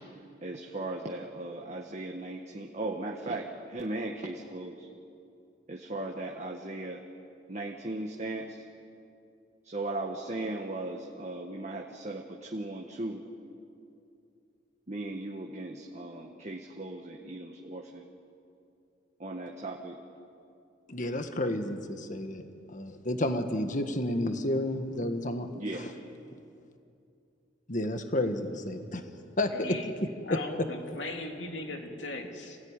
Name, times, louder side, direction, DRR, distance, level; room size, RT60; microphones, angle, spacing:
voice 1, 0.4-4.9 5.7-7.0 7.5-8.6 9.6-13.2 14.9-18.0 19.2-20.0 25.5-25.9, right 2 dB, 40° right, 1 dB, 1.6 m, -37 dB
voice 2, 20.9-22.4 22.7-25.5 25.7-25.8 27.7-29.0 29.4-29.8, left 1 dB, 45° left, 7 dB, 1.6 m, -31 dB
voice 3, 29.5-32.6, left 2 dB, 80° left, 2 dB, 2.9 m, -38 dB
26.5 x 17.0 x 9.9 m, 2.6 s
head